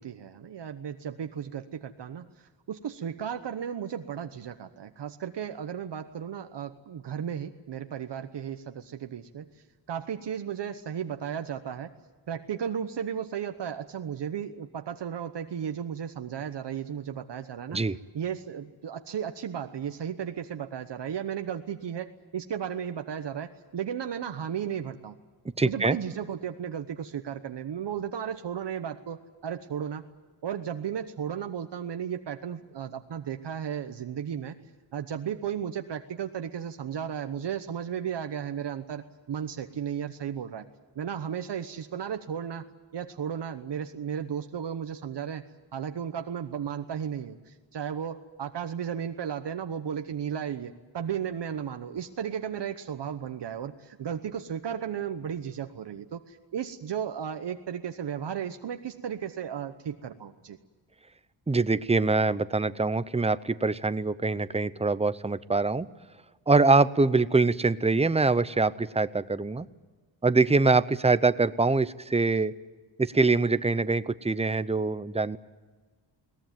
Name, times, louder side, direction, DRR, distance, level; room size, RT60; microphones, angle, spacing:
voice 1, 0.0-11.9 12.3-17.8 18.1-25.2 25.6-30.1 30.4-34.5 34.9-40.7 40.9-42.7 42.9-45.4 45.7-60.6, right 8 dB, 60° right, 7 dB, 1.1 m, -34 dB
voice 2, 25.6-26.0 61.5-65.9 66.5-69.7 70.2-72.5 73.0-75.4, right 3 dB, 15° right, 15 dB, 0.6 m, -24 dB
21.5 x 19.0 x 9.3 m, 1.3 s
wide cardioid pair, 115°, 47 cm